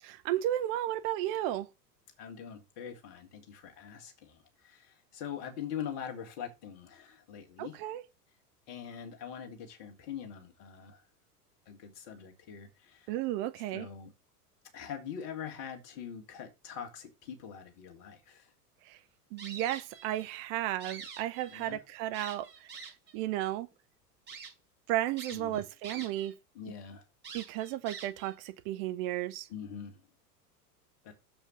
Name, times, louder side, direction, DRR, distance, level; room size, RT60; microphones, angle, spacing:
voice 1, 0.0-1.7 7.6-8.0 13.1-13.9 18.8-19.0 19.3-22.7 23.1-23.7 24.9-26.3 27.3-29.5, right 13 dB, 35° right, 0.8 m, -33 dB
voice 2, 2.2-7.8 8.7-11.0 11.7-13.1 13.7-14.1 14.7-18.5 21.5-21.8 25.3-25.6 26.5-27.1 29.5-30.0 31.0-31.1, left 8 dB, 45° left, 2.5 m, -43 dB
sound 1, 19.4-20.3 20.6-21.7 22.1-23.1 23.7-23.8 24.3-24.5 25.2-26.3 26.6-26.7 27.2-28.3, right 5 dB, 20° right, 5.2 m, -46 dB
7.2 x 5.6 x 6.6 m
figure-of-eight pair, 85°, 47 cm